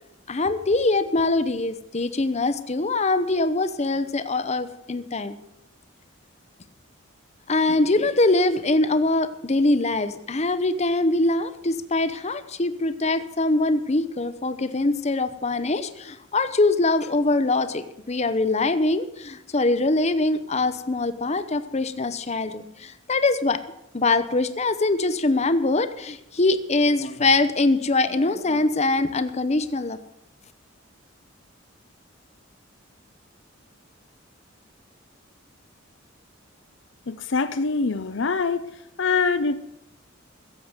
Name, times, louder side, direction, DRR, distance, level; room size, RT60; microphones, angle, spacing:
voice 1, 0.3-5.4 7.5-23.6 23.9-30.0, left 2 dB, 35° left, 12 dB, 0.8 m, -23 dB
voice 2, 37.1-38.6 39.0-39.5, left 4 dB, 60° left, 10 dB, 0.6 m, -24 dB
16.0 x 7.8 x 8.0 m, 0.85 s
head